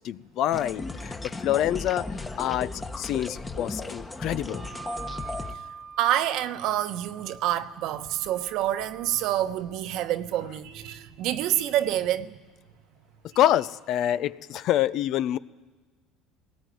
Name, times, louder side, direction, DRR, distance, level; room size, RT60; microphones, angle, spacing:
voice 1, 0.0-2.0 2.4-4.7 13.4-15.4, left 12 dB, 55° left, 0.6 m, -26 dB
sound 1, 0.5-5.5, left 3 dB, 15° left, 1.3 m, -35 dB
Wind instrument woodwind instrument, 4.5-9.5, right 6 dB, 35° right, 0.8 m, -44 dB
voice 2, 6.0-12.4, right 12 dB, 65° right, 1.1 m, -27 dB
20.5 x 19.0 x 9.3 m
supercardioid pair, 110°, 0 cm